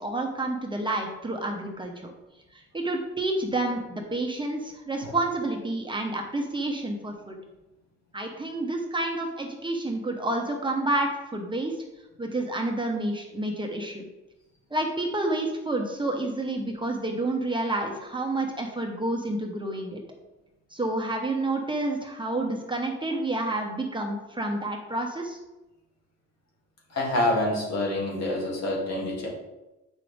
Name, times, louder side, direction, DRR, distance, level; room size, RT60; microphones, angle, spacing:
voice 1, 0.0-2.1 2.5-7.4 8.1-11.7 12.2-14.0 14.7-20.0 20.7-25.4, right 2 dB, 15° right, 1 dB, 1.3 m, -29 dB
voice 2, 26.9-29.3, left 1 dB, 60° left, -2 dB, 2.6 m, -27 dB
8.3 x 5.9 x 3.5 m, 1.0 s
cardioid pair, 90°, 30 cm